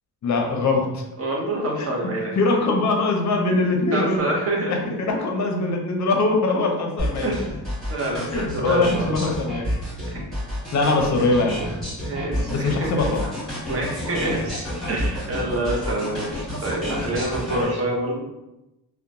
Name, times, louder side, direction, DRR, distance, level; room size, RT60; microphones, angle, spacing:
voice 1, 0.2-1.0 1.8-1.9 2.4-4.3 4.7-7.3 8.3-9.7 10.7-11.6 12.5-13.2 17.5-17.7, left 3 dB, 45° left, 2 dB, 0.6 m, -22 dB
voice 2, 1.2-2.3 3.9-5.0 7.2-7.6 7.9-9.3 10.1-10.4 11.2-11.3 12.0-13.2 13.7-18.2, right 1 dB, 35° right, -2 dB, 0.7 m, -27 dB
sound 1, 7.0-17.6, equal, ahead, 1.3 m, -29 dB
2.8 x 2.1 x 2.5 m, 0.95 s
cardioid pair, 110°, 40 cm